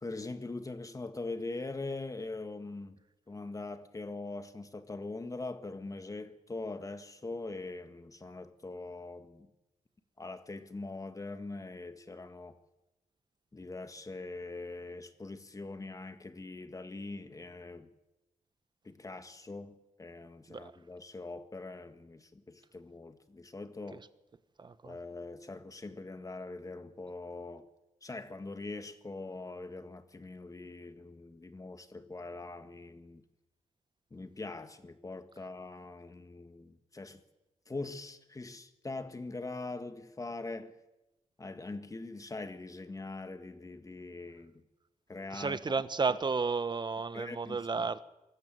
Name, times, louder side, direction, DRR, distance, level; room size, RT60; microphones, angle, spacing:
voice 1, 0.0-3.0 3.3-9.5 10.2-12.6 13.5-17.9 18.8-24.0 24.9-27.7 28.0-33.2 34.1-37.2 37.7-40.7 41.4-44.5 45.1-45.8 47.1-47.9, left 3 dB, 25° left, 1.8 m, -42 dB
voice 2, 24.6-25.0 45.3-48.0, right 4 dB, 35° right, 1.2 m, -32 dB
24.0 x 14.0 x 9.3 m
cardioid pair, 95°, 13 cm